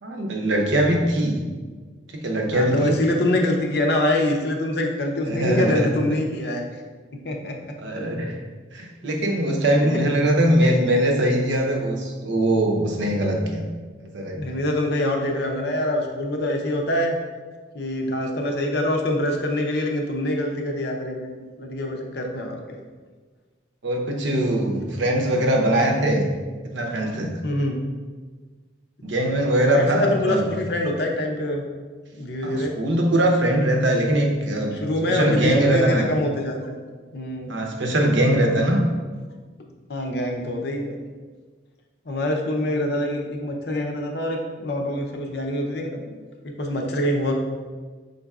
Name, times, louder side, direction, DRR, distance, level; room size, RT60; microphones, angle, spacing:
voice 1, 0.0-1.4 2.1-3.0 5.3-5.9 7.8-8.4 8.7-13.7 14.0-14.6 21.3-21.4 23.8-26.3 26.6-27.4 29.0-30.4 32.4-34.8 35.1-36.1 37.5-38.9, right 1 dB, 75° right, 1 dB, 0.7 m, -21 dB
voice 2, 2.5-6.7 7.2-7.5 14.3-17.2 17.7-21.3 21.6-22.6 27.4-27.8 29.7-31.6 32.1-32.7 34.6-36.8 37.1-37.7 39.9-40.9 42.1-47.3, left 1 dB, 55° left, 2 dB, 0.6 m, -25 dB
5.4 x 3.9 x 2.3 m, 1.4 s
head